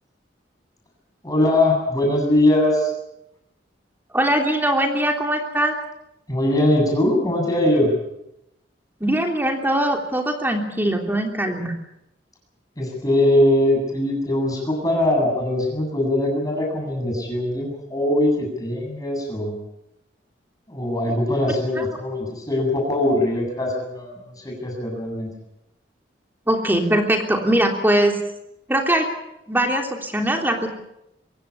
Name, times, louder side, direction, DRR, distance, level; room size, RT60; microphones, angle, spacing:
voice 1, 1.2-2.9 6.3-7.9 12.8-19.5 20.7-25.3, left 1 dB, 20° left, 1 dB, 7.9 m, -21 dB
voice 2, 4.1-5.7 9.0-11.7 21.8-21.9 26.5-28.2 28.7-29.1 29.5-30.7, right 1 dB, 10° right, 3 dB, 3.2 m, -21 dB
24.0 x 16.5 x 8.5 m, 0.85 s
head